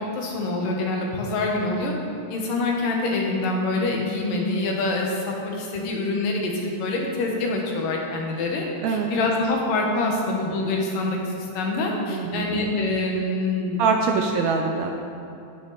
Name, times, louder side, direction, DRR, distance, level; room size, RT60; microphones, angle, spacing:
voice 1, 0.0-1.9 2.3-6.5 6.8-13.8 14.1-14.3, left 2 dB, 85° left, 0 dB, 3.0 m, -25 dB
voice 2, 12.1-12.5 13.8-14.9, right 5 dB, 75° right, 2 dB, 1.7 m, -23 dB
17.0 x 6.7 x 4.1 m, 2.7 s
omnidirectional pair, 3.7 m